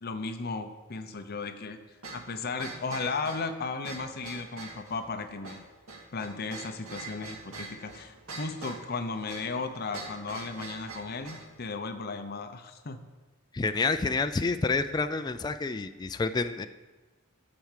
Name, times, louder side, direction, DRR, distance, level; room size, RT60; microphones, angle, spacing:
voice 1, 0.0-5.6 6.1-13.0, left 4 dB, 45° left, 8 dB, 0.7 m, -35 dB
sound 1, 2.0-11.5, right 3 dB, 80° right, 2.2 m, -44 dB
voice 2, 13.5-16.7, left 3 dB, 20° left, 9 dB, 0.3 m, -28 dB
13.0 x 4.7 x 7.3 m, 1.2 s
head